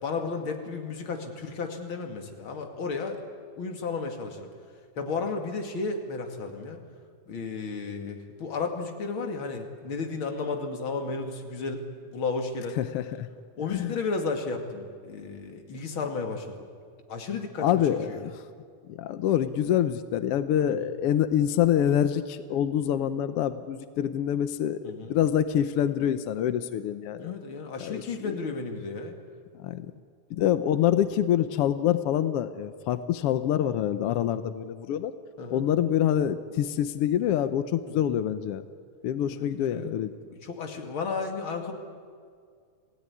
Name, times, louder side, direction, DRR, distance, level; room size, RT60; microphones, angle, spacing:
voice 1, 0.0-3.2 3.6-4.5 5.0-6.8 7.3-12.8 13.6-16.6 17.1-18.2 20.7-20.9 24.8-25.2 27.2-29.2 35.4-35.6 37.9-38.2 39.3-41.7, left 4 dB, 40° left, 4 dB, 2.7 m, -33 dB
voice 2, 12.8-13.3 13.7-13.9 17.6-18.4 19.0-27.3 27.8-28.4 29.6-29.9 30.3-35.1 35.5-38.6 39.0-40.1, left 10 dB, 80° left, 11 dB, 1.3 m, -26 dB
28.0 x 17.0 x 9.8 m, 2.1 s
omnidirectional pair, 3.7 m